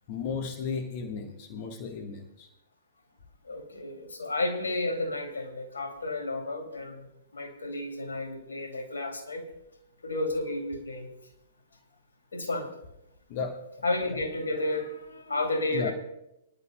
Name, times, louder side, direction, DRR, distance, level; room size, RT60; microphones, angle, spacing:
voice 1, 0.1-2.5 13.3-13.6 15.7-15.9, left 5 dB, 45° left, 4 dB, 1.4 m, -34 dB
voice 2, 3.4-7.1 7.3-9.4 10.0-11.1 12.3-12.7 13.8-15.9, left 2 dB, 75° left, 4 dB, 2.5 m, -32 dB
25.0 x 11.0 x 2.2 m, 0.87 s
figure-of-eight pair, 115°, 0 cm